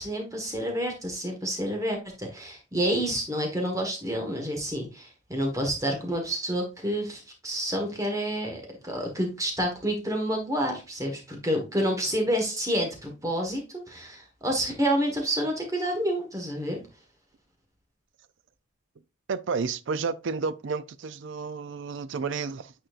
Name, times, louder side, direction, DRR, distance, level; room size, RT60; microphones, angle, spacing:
voice 1, 0.0-16.8, equal, 15° right, 1.4 m, -29 dB
voice 2, 19.3-22.7, right 5 dB, 55° right, 0.4 m, -31 dB
9.0 x 4.3 x 2.5 m
head